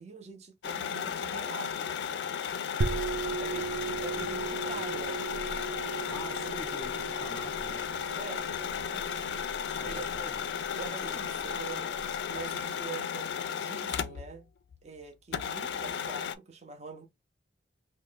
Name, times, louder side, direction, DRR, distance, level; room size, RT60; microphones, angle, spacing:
voice 1, 0.0-2.1 3.4-3.7 4.0-5.2 6.4-6.5 8.1-9.3 9.9-10.0 10.8-13.3 13.6-14.5 14.8-17.1, right 5 dB, 35° right, 0.6 m, -44 dB
sound 1, 0.6-14.4 14.7-14.8 15.3-16.4, left 7 dB, 70° left, 0.3 m, -34 dB
sound 2, 2.8-12.2, right 4 dB, 90° right, 0.4 m, -38 dB
voice 2, 3.3-5.2 6.1-7.8 9.7-10.4, left 1 dB, 15° left, 0.7 m, -47 dB
3.0 x 2.2 x 3.2 m
head